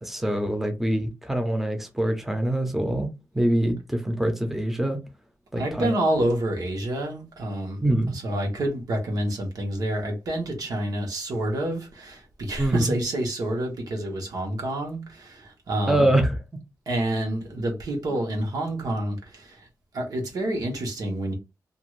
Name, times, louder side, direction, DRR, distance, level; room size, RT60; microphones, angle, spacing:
voice 1, 0.0-3.1 3.3-5.0 5.5-5.9 7.8-8.1 12.6-12.9 15.9-16.4, right 1 dB, 5° right, 0.6 m, -24 dB
voice 2, 5.6-16.1 16.9-19.7 19.9-21.3, right 1 dB, 80° right, 1.0 m, -28 dB
2.5 x 2.4 x 3.1 m
wide cardioid pair, 135°, 6 cm